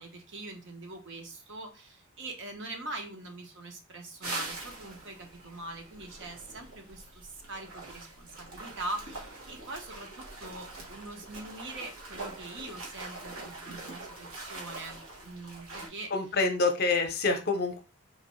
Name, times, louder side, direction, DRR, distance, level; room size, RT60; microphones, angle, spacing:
voice 1, 0.0-15.0 15.2-16.1, right 2 dB, 55° right, 3 dB, 0.9 m, -42 dB
sound 1, 4.2-15.9, right 2 dB, 85° right, 1.5 m, -43 dB
voice 2, 16.1-17.8, left 3 dB, 45° left, 6 dB, 0.7 m, -27 dB
4.1 x 3.0 x 3.1 m, 0.29 s
head